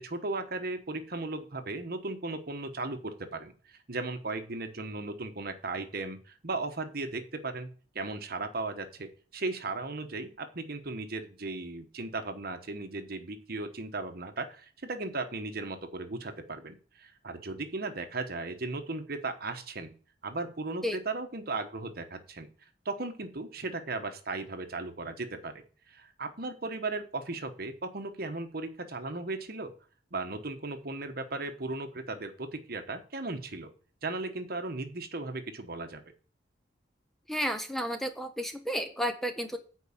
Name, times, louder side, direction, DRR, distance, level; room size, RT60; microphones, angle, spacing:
voice 1, 0.0-7.7 7.9-19.9 20.2-22.5 22.8-29.7 30.1-33.7 34.0-36.0, right 3 dB, 50° right, 8 dB, 1.1 m, -36 dB
voice 2, 37.3-39.6, equal, ahead, 7 dB, 0.6 m, -32 dB
9.2 x 4.7 x 7.2 m, 0.40 s
head